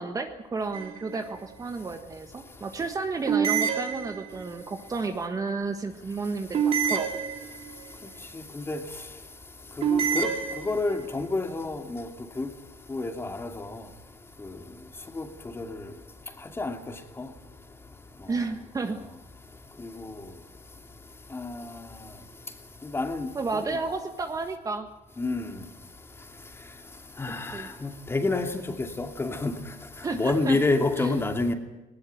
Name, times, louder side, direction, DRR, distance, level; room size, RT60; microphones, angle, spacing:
voice 1, 0.0-7.2 18.3-19.0 23.3-24.9 27.5-27.7 30.0-30.6 31.0-31.2, right 4 dB, 20° right, 1.6 m, -32 dB
sound 1, 0.7-1.3 3.3-4.6 6.5-7.9 9.8-11.1, right 7 dB, 40° right, 3.0 m, -27 dB
voice 2, 9.8-10.3 10.7-12.1 12.4-12.5 12.9-13.8 15.2-15.3 15.6-15.7 16.6-16.8 20.0-20.1 21.3-21.7 22.9-23.3 23.7-23.8 25.2-25.4 27.2-28.6 29.0-29.5 30.1-31.5, left 3 dB, 15° left, 2.6 m, -28 dB
19.5 x 18.5 x 9.4 m
cardioid pair, 140°, 15 cm